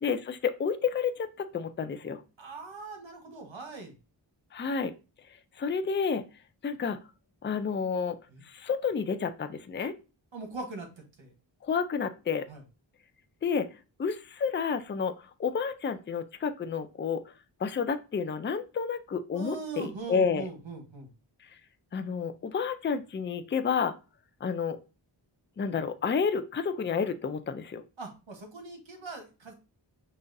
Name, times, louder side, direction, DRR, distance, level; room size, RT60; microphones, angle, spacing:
voice 1, 0.0-2.2 4.5-4.9 5.6-6.2 6.6-7.0 7.4-8.2 8.5-9.9 11.6-12.5 13.4-13.7 14.0-15.1 15.4-17.2 17.6-20.5 21.9-23.9 24.4-24.8 25.6-27.8, left 6 dB, 25° left, 10 dB, 0.4 m, -30 dB
voice 2, 2.4-3.9 8.3-8.4 10.3-10.9 11.2-11.3 12.5-12.6 19.3-21.1 28.0-29.5, right 3 dB, 75° right, 2 dB, 1.3 m, -41 dB
5.7 x 2.5 x 2.6 m, 0.31 s
wide cardioid pair, 50°, 46 cm